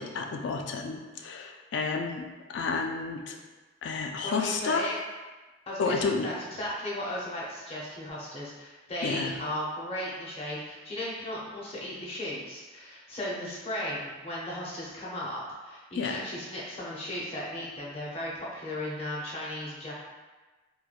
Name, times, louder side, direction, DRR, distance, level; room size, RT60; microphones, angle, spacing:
voice 1, 0.0-3.4 3.8-4.9 5.8-6.3 9.0-9.3 15.9-16.2, left 4 dB, 65° left, 3 dB, 0.3 m, -31 dB
voice 2, 4.2-5.0 5.7-19.9, left 1 dB, 30° left, -5 dB, 0.6 m, -36 dB
3.0 x 2.2 x 2.4 m, 1.3 s
head